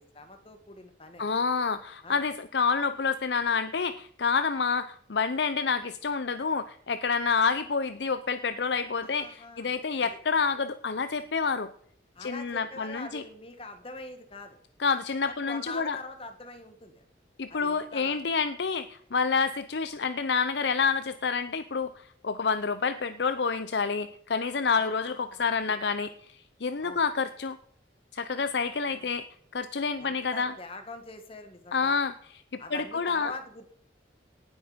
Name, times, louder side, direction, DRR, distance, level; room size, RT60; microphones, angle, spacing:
voice 1, 0.0-1.3 2.0-2.2 9.0-10.2 12.2-14.6 15.3-17.1 17.5-18.2 24.7-25.8 26.8-27.0 28.4-28.5 28.9-29.1 30.0-32.0 32.6-33.7, left 2 dB, 30° left, 7 dB, 1.9 m, -44 dB
voice 2, 1.2-11.7 12.2-13.2 14.8-16.0 17.4-21.9 22.2-27.6 28.1-29.3 29.5-30.5 31.7-32.4 32.7-33.3, left 5 dB, 70° left, 11 dB, 0.6 m, -28 dB
18.5 x 8.1 x 5.1 m, 0.64 s
head